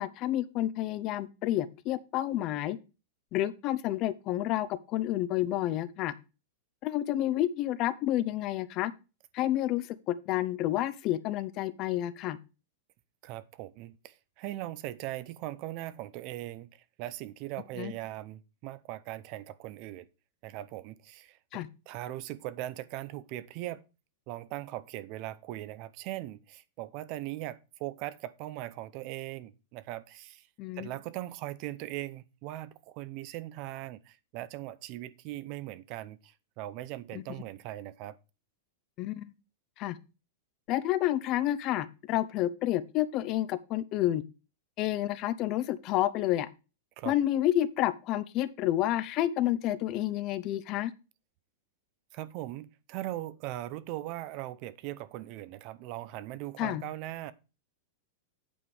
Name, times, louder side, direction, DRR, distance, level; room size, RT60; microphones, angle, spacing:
voice 1, 0.0-2.8 3.3-6.1 6.8-8.9 9.3-12.4 17.8-17.9 21.5-21.7 30.6-30.9 37.1-37.2 39.0-39.3 39.8-40.0 40.7-44.2 44.8-46.5 47.0-50.9 56.6-56.8, left 13 dB, 30° left, 0.7 m, -29 dB
voice 2, 13.2-20.1 20.4-23.8 24.3-30.5 30.8-38.2 47.0-47.1 52.1-57.3, right 15 dB, 40° right, 0.6 m, -40 dB
8.6 x 5.1 x 5.5 m
supercardioid pair, 165°, 0 cm